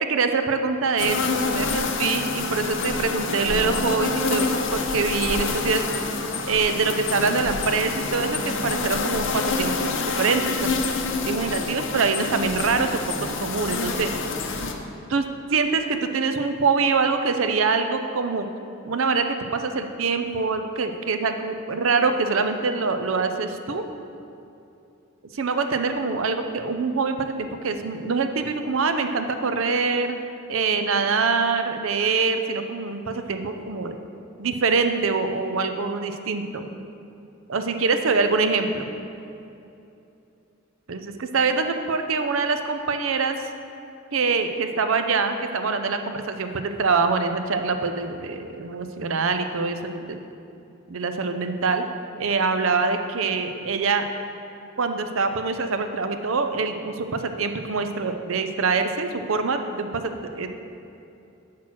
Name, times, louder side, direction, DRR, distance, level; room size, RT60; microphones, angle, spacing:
voice 1, 0.1-5.8 6.5-10.7 11.3-14.1 15.1-15.2 15.5-18.5 18.9-23.8 25.3-30.2 30.5-34.0 34.4-36.7 37.5-38.9 40.9-43.3 44.1-50.2 50.9-51.8 52.2-54.0 54.8-60.5, right 4 dB, 65° right, 7 dB, 0.6 m, -24 dB
sound 1, 1.0-14.7, left 4 dB, 60° left, 0.7 m, -27 dB
7.4 x 6.0 x 6.1 m, 2.7 s
head